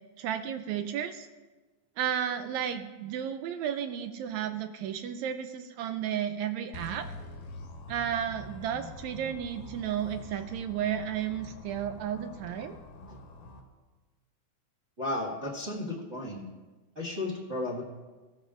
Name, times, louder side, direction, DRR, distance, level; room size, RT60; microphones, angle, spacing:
voice 1, 0.2-1.3 2.0-7.1 7.9-12.8, right 9 dB, 80° right, 9 dB, 1.7 m, -33 dB
sound 1, 6.7-13.6, left 2 dB, 75° left, 2.9 m, -45 dB
voice 2, 15.0-16.5 16.9-17.8, left 2 dB, 30° right, -6 dB, 1.4 m, -34 dB
17.5 x 13.0 x 2.5 m, 1.3 s
omnidirectional pair, 3.6 m